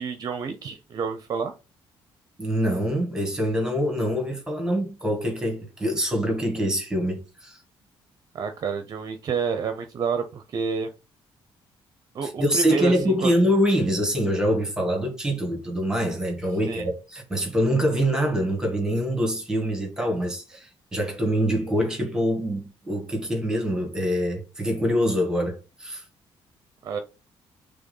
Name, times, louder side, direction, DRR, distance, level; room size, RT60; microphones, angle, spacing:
voice 1, 0.0-1.5 8.3-10.9 12.1-13.3 16.7-16.9 26.8-27.0, right 5 dB, 40° right, 0.6 m, -29 dB
voice 2, 2.4-7.6 12.2-26.0, equal, 5° right, 1.5 m, -25 dB
6.1 x 3.5 x 5.4 m
cardioid pair, 175°, 10 cm